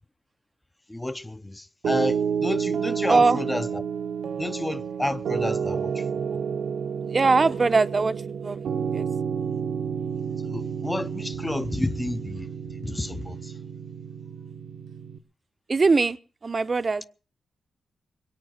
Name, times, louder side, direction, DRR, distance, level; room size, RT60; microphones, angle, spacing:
voice 1, 0.9-3.8 4.4-6.0 10.4-12.5 12.8-13.5, left 1 dB, 15° left, 0.7 m, -30 dB
Piano, 1.8-15.2, right 7 dB, 90° right, 1.0 m, -30 dB
sound 1, 2.7-10.5, right 7 dB, 65° right, 1.0 m, -41 dB
voice 2, 3.1-3.4 7.1-8.1 8.4-8.6 8.9-9.1 15.7-16.2 16.4-17.0, right 4 dB, 40° right, 0.7 m, -21 dB
22.5 x 8.9 x 6.4 m
cardioid pair, 75°, 0 cm